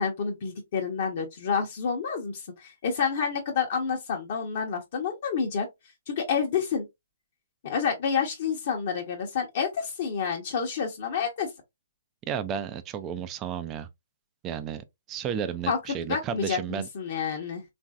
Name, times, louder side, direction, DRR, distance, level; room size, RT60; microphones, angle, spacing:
voice 1, 0.0-5.7 6.1-6.9 7.6-11.5 15.7-15.8 16.1-17.6, left 6 dB, 50° left, 0.8 m, -29 dB
voice 2, 12.3-13.9 14.4-16.9, right 8 dB, 25° right, 0.4 m, -33 dB
3.0 x 2.5 x 2.3 m
hypercardioid pair, 135°, 0 cm